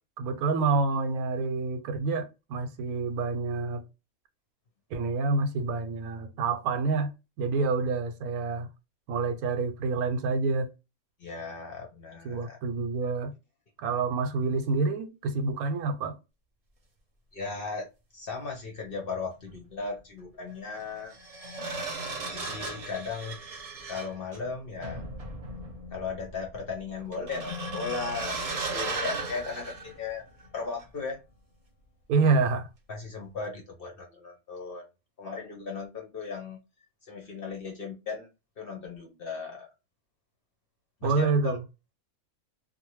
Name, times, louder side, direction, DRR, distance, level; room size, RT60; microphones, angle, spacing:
voice 1, 0.2-3.8 4.9-7.1 7.4-8.7 9.1-10.7 12.2-13.3 13.8-16.1 32.1-32.7 41.0-41.6, right 4 dB, 90° right, 1.1 m, -27 dB
voice 2, 11.2-12.6 17.3-17.9 18.1-21.1 22.3-23.4 23.9-25.1 25.9-30.2 30.5-31.2 32.9-34.9 35.2-36.6 37.1-38.3 38.6-39.7 41.0-41.6, left 4 dB, 50° left, 0.7 m, -36 dB
sound 1, 19.4-19.6 20.8-30.5 30.8-31.1, right 2 dB, 55° right, 0.4 m, -36 dB
2.7 x 2.2 x 2.9 m
omnidirectional pair, 1.5 m